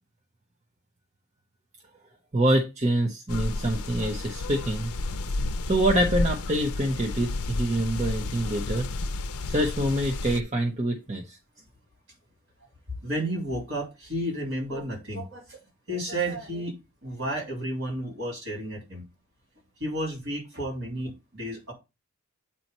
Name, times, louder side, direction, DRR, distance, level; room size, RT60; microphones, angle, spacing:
voice 1, 2.3-4.9 5.7-8.9 9.5-11.4, right 1 dB, 30° right, 0.9 m, -25 dB
sound 1, 3.3-10.4, left 2 dB, 80° left, 0.6 m, -31 dB
voice 2, 13.0-15.6 15.9-16.7 17.0-19.0 19.8-21.7, right 1 dB, 55° right, 3.7 m, -32 dB
8.5 x 3.1 x 5.4 m
head